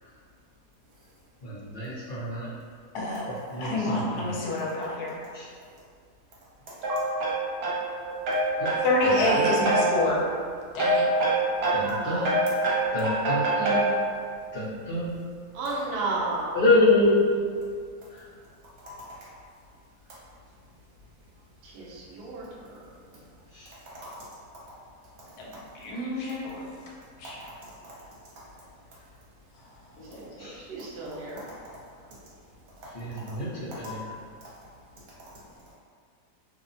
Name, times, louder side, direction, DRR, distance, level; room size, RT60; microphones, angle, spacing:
voice 1, 1.7-2.5 3.5-4.0 8.6-8.7 11.7-12.3 12.9-13.7 14.5-15.1 16.5-17.1 18.8-19.0 30.4-30.5 32.9-33.5 33.8-34.0, left 2 dB, 45° left, -15 dB, 0.9 m, -25 dB
voice 2, 2.9-3.3 3.6-5.2 8.8-10.2 10.7-11.1 25.4-26.6 27.2-27.4 30.0-30.2, left 2 dB, 75° left, -3 dB, 1.1 m, -28 dB
voice 3, 6.8-8.8 9.2-9.9 10.8-14.0, right 2 dB, 70° right, -6 dB, 1.2 m, -25 dB
voice 4, 12.0-12.3 15.5-16.6 21.6-22.8 30.1-31.4, right 3 dB, 85° right, -5 dB, 0.5 m, -33 dB
2.7 x 2.1 x 2.6 m, 2.1 s
omnidirectional pair, 1.7 m